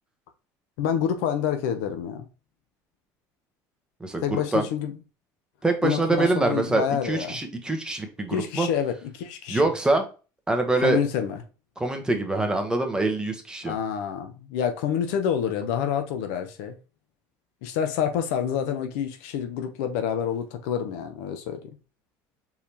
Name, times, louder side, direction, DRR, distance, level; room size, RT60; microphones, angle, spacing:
voice 1, 0.8-2.3 4.2-4.9 5.8-7.4 8.3-9.7 10.8-11.4 13.7-16.8 17.6-21.6, left 8 dB, 90° left, 0.8 m, -27 dB
voice 2, 4.0-4.6 5.6-8.7 9.5-10.0 10.5-11.0 11.8-13.7, right 2 dB, 10° right, 1.0 m, -25 dB
4.7 x 3.5 x 2.9 m
cardioid pair, 120°, 8 cm